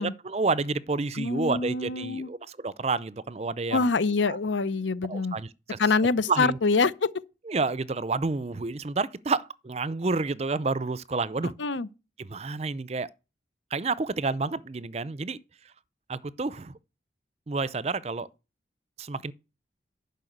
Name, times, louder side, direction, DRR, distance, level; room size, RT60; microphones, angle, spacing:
voice 1, 0.0-3.9 4.2-4.4 5.1-5.8 6.3-6.6 7.5-11.5 12.2-13.1 13.7-15.4 16.1-16.8 17.5-18.3 19.0-19.3, right 3 dB, 35° right, 0.5 m, -29 dB
voice 2, 1.2-2.3 3.7-5.4 5.8-7.1 11.6-11.9, left 4 dB, 85° left, 0.7 m, -25 dB
11.0 x 5.5 x 7.9 m
head